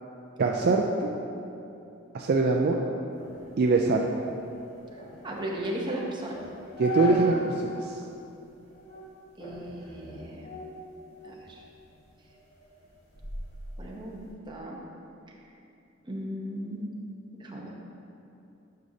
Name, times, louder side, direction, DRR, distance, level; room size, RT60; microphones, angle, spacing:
voice 1, 0.4-1.1 2.1-2.8 3.6-4.0 6.8-7.9, right 3 dB, 50° right, 1 dB, 0.4 m, -23 dB
sound 1, 3.1-7.6 8.0-8.1 8.7-9.1 9.4-11.5 11.9-14.3, left 3 dB, 35° left, 1.6 m, -39 dB
voice 2, 4.9-6.4 9.4-10.5 11.2-11.6 13.8-14.8 16.0-16.9 17.4-17.7, right 1 dB, 20° right, -2 dB, 0.9 m, -36 dB
9.3 x 6.5 x 2.8 m, 2.7 s
head